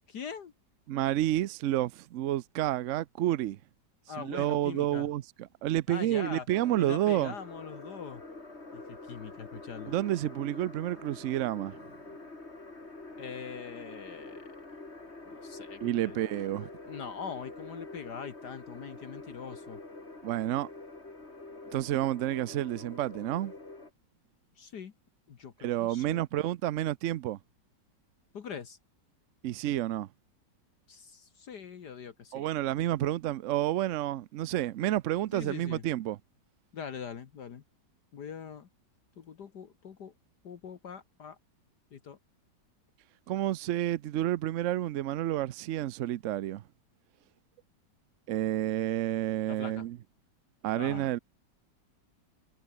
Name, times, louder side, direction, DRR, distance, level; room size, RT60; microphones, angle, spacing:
voice 1, 0.1-0.5 4.1-5.1 5.9-6.5 6.8-8.2 8.7-9.9 13.2-14.5 15.3-16.2 16.9-19.8 24.6-24.9 25.3-26.3 28.3-28.8 30.9-32.5 35.3-35.8 36.7-37.6 38.1-38.7 39.2-40.1 40.4-41.4 41.9-42.2 49.5-49.9 50.7-51.1, left 7 dB, 65° left, 2.0 m, -42 dB
voice 2, 0.9-3.6 4.2-5.2 5.6-7.3 9.9-11.8 15.8-16.7 20.2-20.7 21.7-23.5 25.6-27.4 29.4-30.1 32.3-36.2 43.3-46.6 48.3-50.0 50.6-51.2, right 13 dB, 75° right, 0.7 m, -30 dB
sound 1, 6.5-23.9, left 2 dB, 35° left, 4.0 m, -46 dB
omnidirectional pair, 2.0 m